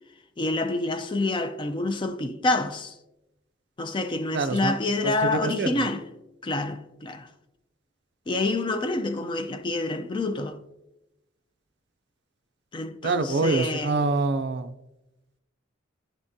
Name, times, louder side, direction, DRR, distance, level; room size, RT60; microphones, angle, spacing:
voice 1, 0.4-3.0 3.8-6.0 6.4-7.3 8.3-10.6 12.7-13.9, left 2 dB, 25° left, 0.4 m, -27 dB
voice 2, 4.3-4.7 5.0-5.8 13.0-14.7, right 3 dB, 60° right, 0.4 m, -25 dB
10.5 x 3.6 x 2.7 m
head